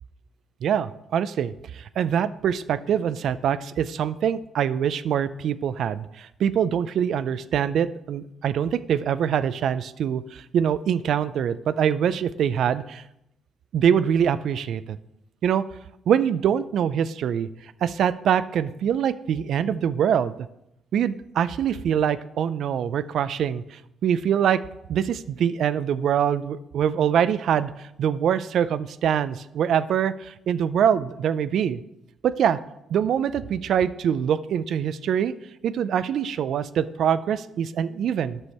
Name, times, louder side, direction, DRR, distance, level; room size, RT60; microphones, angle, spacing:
voice 1, 0.6-13.0 13.7-15.0 15.4-15.6 16.1-17.5 17.8-20.3 20.9-24.6 24.9-31.8 32.2-32.6 32.9-35.3 35.6-38.4, right 8 dB, 70° right, 15 dB, 0.4 m, -24 dB
9.7 x 6.3 x 4.3 m, 0.84 s
cardioid pair, 90°, 0 cm